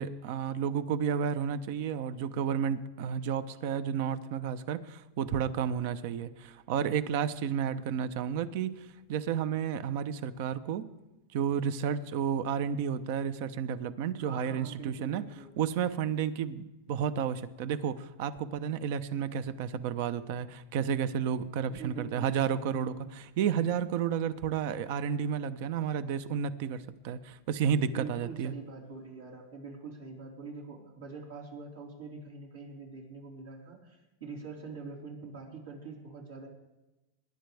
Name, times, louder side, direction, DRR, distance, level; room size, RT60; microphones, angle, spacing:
voice 1, 0.0-10.8 11.3-15.2 15.6-28.5, right 8 dB, 65° right, 14 dB, 0.8 m, -31 dB
voice 2, 14.1-15.5 21.7-23.1 27.8-36.5, right 4 dB, 85° right, -2 dB, 4.3 m, -44 dB
22.5 x 10.5 x 3.5 m, 1.0 s
hypercardioid pair, 115°, 0 cm